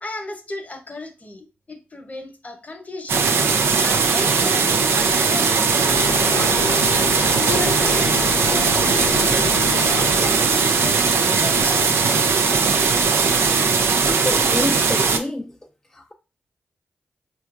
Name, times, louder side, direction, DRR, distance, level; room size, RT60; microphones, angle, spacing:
voice 1, 0.0-3.4 3.8-6.5 7.4-9.4 9.9-12.8, left 3 dB, 35° left, 0.8 m, -35 dB
sound 1, 3.1-15.2, right 5 dB, 75° right, 0.4 m, -19 dB
sound 2, 5.9-10.3, left 5 dB, 90° left, 0.3 m, -29 dB
voice 2, 14.1-15.6 15.9-16.1, left 1 dB, 10° left, 0.4 m, -27 dB
4.3 x 2.3 x 2.4 m
cardioid pair, 45°, 4 cm